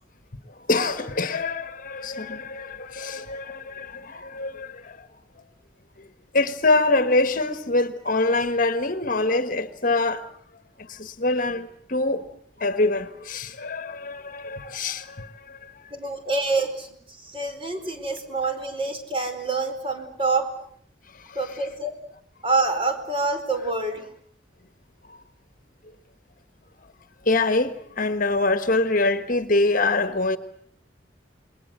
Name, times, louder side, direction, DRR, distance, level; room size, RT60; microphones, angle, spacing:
voice 1, 0.7-5.1 6.3-10.3 10.9-12.3 12.6-15.7 21.3-21.5 27.2-30.4, left 2 dB, 45° left, 1.5 m, -24 dB
voice 2, 15.9-16.9 17.2-20.5 21.3-21.9 22.4-24.1, right 3 dB, 30° right, 4.7 m, -26 dB
28.0 x 21.5 x 7.9 m
head